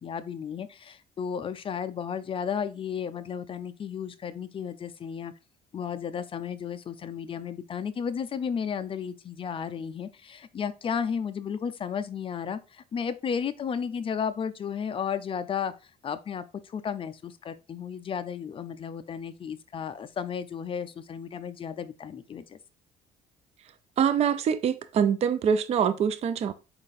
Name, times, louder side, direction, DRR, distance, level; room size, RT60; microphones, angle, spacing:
voice 1, 0.0-5.3 5.7-15.7 16.0-22.6, left 7 dB, 30° left, 0.4 m, -33 dB
voice 2, 24.0-26.5, right 7 dB, 40° right, 0.4 m, -24 dB
4.7 x 2.5 x 3.9 m
cardioid pair, 110°, 17 cm